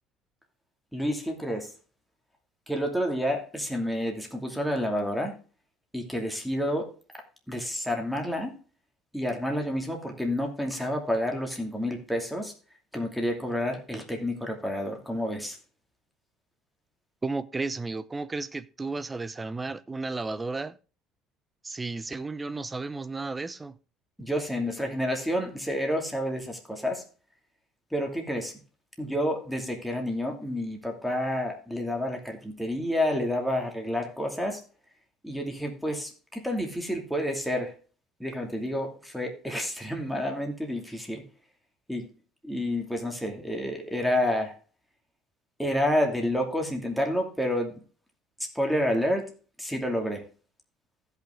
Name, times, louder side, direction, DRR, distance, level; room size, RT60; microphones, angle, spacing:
voice 1, 0.9-1.7 2.7-5.3 5.9-6.9 7.5-8.5 9.1-12.5 12.9-15.6 24.2-27.0 27.9-28.5 29.0-34.6 35.2-37.7 38.2-41.2 41.9-42.1 42.4-44.5 45.6-47.7 48.5-49.3 49.6-50.2, equal, ahead, 2.6 m, -29 dB
voice 2, 17.2-20.8 21.6-23.7, right 3 dB, 20° right, 0.7 m, -33 dB
15.5 x 5.8 x 3.7 m
cardioid pair, 110°, 0 cm